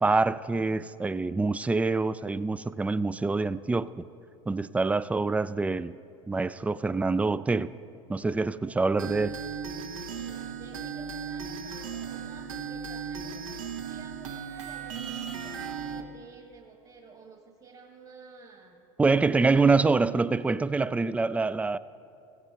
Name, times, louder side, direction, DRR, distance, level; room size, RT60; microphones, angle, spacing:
voice 1, 0.0-4.1 4.5-5.9 6.3-7.7 8.1-9.3 19.0-21.8, right 3 dB, 10° right, 0.3 m, -25 dB
voice 2, 8.7-9.2 10.1-18.8 19.4-19.8, right 4 dB, 35° right, 1.7 m, -51 dB
sound 1, 9.0-16.0, right 6 dB, 75° right, 1.0 m, -37 dB
17.5 x 15.5 x 2.9 m
hypercardioid pair, 80°, 17 cm